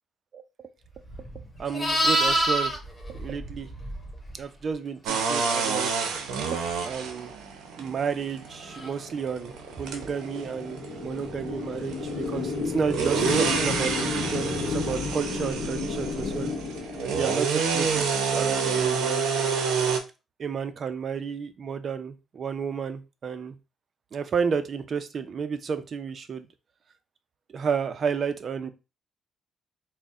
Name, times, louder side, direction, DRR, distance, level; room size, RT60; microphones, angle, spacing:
Livestock farm animals working animals, 1.0-4.3 8.7-8.9, right 1 dB, 25° left, 1.6 m, -27 dB
voice 1, 1.6-2.7 3.1-3.7 4.4-5.9 6.5-7.3 7.8-16.5 17.1-19.3 20.4-23.6 24.1-26.5 27.5-28.7, right 6 dB, 50° right, 10 dB, 0.5 m, -31 dB
sound 1, 5.1-20.0, right 5 dB, 90° right, 0.6 m, -29 dB
sound 2, 8.8-17.5, left 4 dB, 75° left, 0.8 m, -32 dB
4.0 x 2.1 x 3.5 m, 0.29 s
cardioid pair, 90°, 0 cm